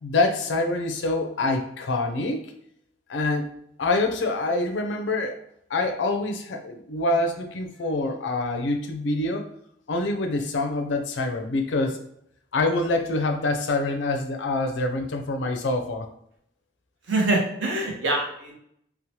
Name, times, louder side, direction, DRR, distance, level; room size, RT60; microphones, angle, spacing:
voice 1, 0.0-2.4 3.1-3.5 3.8-5.4 5.7-9.5 9.9-12.0 12.5-16.1, left 2 dB, 65° left, 5 dB, 0.4 m, -25 dB
voice 2, 17.1-18.6, right 2 dB, 75° right, -1 dB, 0.7 m, -24 dB
3.0 x 2.0 x 2.7 m, 0.72 s
head